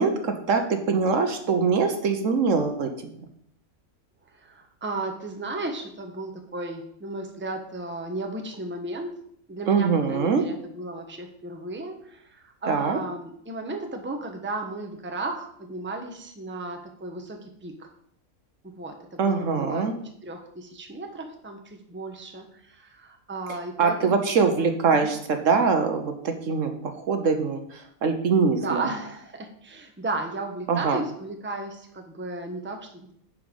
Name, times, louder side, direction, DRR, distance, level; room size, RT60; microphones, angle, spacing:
voice 1, 0.0-3.1 9.7-10.4 12.7-13.0 19.2-19.9 23.8-28.8 30.7-31.0, right 5 dB, 65° right, 6 dB, 1.2 m, -23 dB
voice 2, 4.3-9.1 9.5-17.9 18.6-19.9 20.2-24.5 24.9-25.2 28.6-33.1, right 2 dB, 10° right, 3 dB, 0.9 m, -35 dB
10.0 x 5.1 x 5.3 m, 0.68 s
omnidirectional pair, 1.5 m